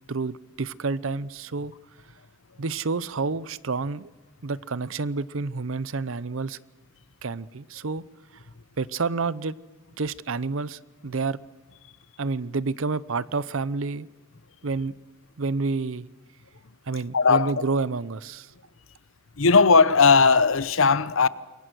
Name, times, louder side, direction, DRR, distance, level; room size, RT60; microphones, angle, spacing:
voice 1, 0.1-1.7 2.6-4.1 4.4-6.6 7.2-8.0 8.8-9.5 10.0-11.4 12.2-14.1 14.6-14.9 15.4-16.1 16.9-18.5, right 4 dB, 75° right, 0.7 m, -29 dB
voice 2, 17.1-17.6 19.4-21.3, left 4 dB, 75° left, 0.9 m, -18 dB
28.0 x 23.0 x 6.3 m
head